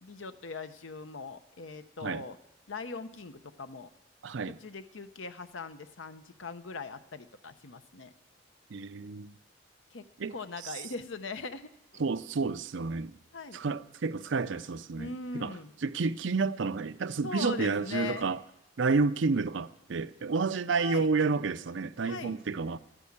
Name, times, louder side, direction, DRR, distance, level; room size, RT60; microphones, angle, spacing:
voice 1, 0.0-2.4 2.7-3.9 4.6-8.1 9.9-10.0 10.3-12.0 13.3-13.6 15.0-15.7 17.2-18.3 20.8-21.1 22.0-22.4, left 4 dB, 80° left, 0.9 m, -40 dB
voice 2, 4.2-4.6 8.7-9.3 10.2-10.3 10.6-10.7 12.0-13.2 13.5-15.5 15.8-18.4 18.8-22.8, right 4 dB, 70° right, 0.5 m, -30 dB
12.5 x 9.9 x 8.7 m
head